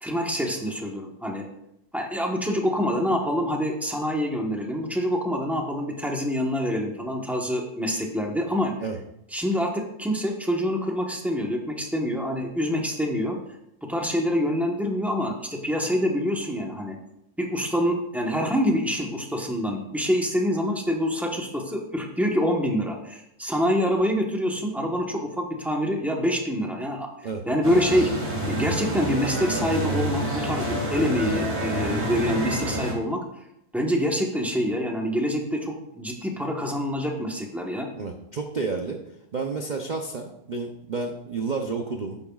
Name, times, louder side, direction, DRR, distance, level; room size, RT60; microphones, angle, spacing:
voice 1, 0.0-1.5 1.9-8.7 9.3-13.4 13.8-17.0 17.4-27.1 27.5-28.1 28.5-33.2 33.7-37.9, equal, ahead, 0 dB, 0.9 m, -26 dB
sound 1, 27.6-32.9, right 1 dB, 25° right, 2.6 m, -28 dB
voice 2, 38.0-39.0 39.3-42.2, right 4 dB, 55° right, 3 dB, 0.5 m, -30 dB
11.0 x 8.9 x 2.4 m, 0.82 s
omnidirectional pair, 1.8 m